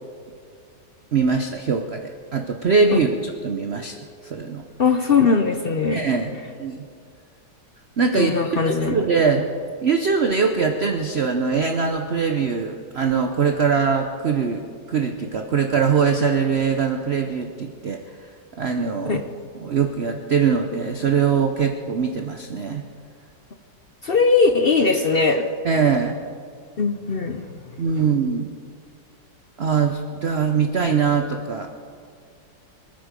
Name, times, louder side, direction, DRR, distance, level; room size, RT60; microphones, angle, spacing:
voice 1, 1.1-3.9 4.2-4.6 5.9-6.8 8.0-9.5 9.8-18.0 18.5-19.2 19.6-22.8 25.6-26.2 27.8-28.5 29.6-31.7, right 5 dB, 50° right, 5 dB, 0.8 m, -22 dB
voice 2, 4.8-6.0 8.1-9.1 19.0-19.3 24.0-25.5 26.8-27.8, left 4 dB, 55° left, 6 dB, 0.6 m, -20 dB
26.0 x 9.1 x 5.2 m, 2.2 s
omnidirectional pair, 2.0 m